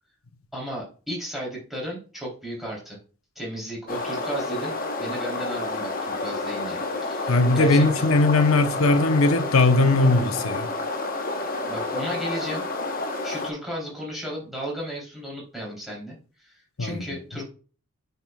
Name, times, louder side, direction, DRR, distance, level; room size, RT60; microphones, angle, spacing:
voice 1, 0.5-3.0 3.3-8.1 11.7-12.6 13.2-17.4, equal, ahead, 3.2 m, -34 dB
sound 1, 3.9-13.5, left 2 dB, 40° left, 1.0 m, -30 dB
voice 2, 7.3-10.7 16.8-17.0, left 2 dB, 80° left, 0.9 m, -19 dB
9.1 x 5.6 x 2.3 m
head